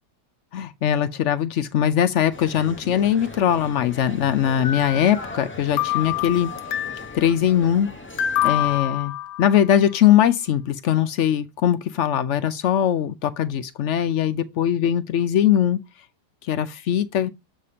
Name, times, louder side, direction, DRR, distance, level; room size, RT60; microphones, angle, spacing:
voice 1, 0.5-6.5 7.1-7.9 8.4-9.1 9.4-15.8 16.4-17.3, left 10 dB, 70° left, 0.7 m, -21 dB
sound 1, 2.3-8.8, left 1 dB, 20° left, 0.3 m, -39 dB
sound 2, 4.6-5.5 5.8-7.2 8.2-9.8, left 12 dB, 85° left, 1.2 m, -26 dB
7.7 x 2.7 x 4.9 m
omnidirectional pair, 1.7 m